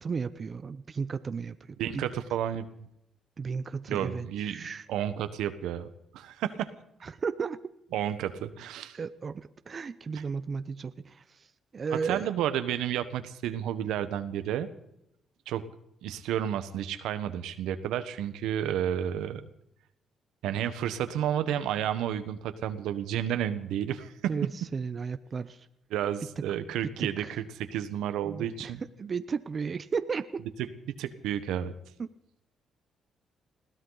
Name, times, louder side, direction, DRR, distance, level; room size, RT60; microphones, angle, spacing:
voice 1, 0.0-1.6 1.9-2.1 3.4-4.8 7.0-7.6 8.9-11.2 11.7-12.3 24.3-25.6 27.0-27.4 28.2-28.7 29.0-30.4 32.0-32.1, right 5 dB, 40° right, 12 dB, 0.8 m, -34 dB
voice 2, 1.8-2.6 3.9-5.9 6.1-6.7 7.9-9.0 10.1-10.2 12.0-14.7 15.5-15.6 16.0-19.5 20.4-24.1 25.9-28.8 30.9-31.7, right 10 dB, 90° right, 10 dB, 1.2 m, -31 dB
21.0 x 16.5 x 4.0 m, 0.80 s
cardioid pair, 90°, 0 cm